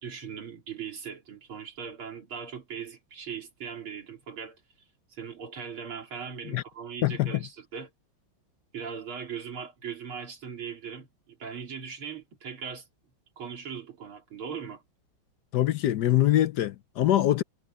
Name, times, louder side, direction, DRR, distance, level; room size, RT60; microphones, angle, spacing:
voice 1, 0.0-4.6 5.1-7.9 8.7-12.9 13.4-14.8, right 7 dB, 75° right, 3.7 m, -39 dB
voice 2, 7.0-7.3 15.5-17.4, left 13 dB, 70° left, 1.0 m, -23 dB
omnidirectional pair, 2.4 m